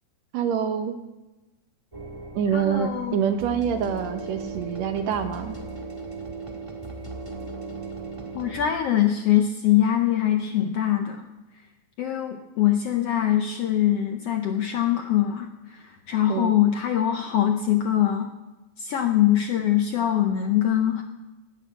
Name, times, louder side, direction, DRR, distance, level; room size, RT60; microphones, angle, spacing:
voice 1, 0.3-1.0 2.3-5.6 16.3-16.6, right 8 dB, 70° right, 7 dB, 2.0 m, -26 dB
sound 1, 1.9-8.7, right 3 dB, 20° right, 0.8 m, -37 dB
voice 2, 2.5-3.2 8.3-11.3 12.0-18.3 18.8-21.0, left 11 dB, 75° left, 5 dB, 1.4 m, -23 dB
18.0 x 6.2 x 7.9 m, 1.1 s
omnidirectional pair, 3.6 m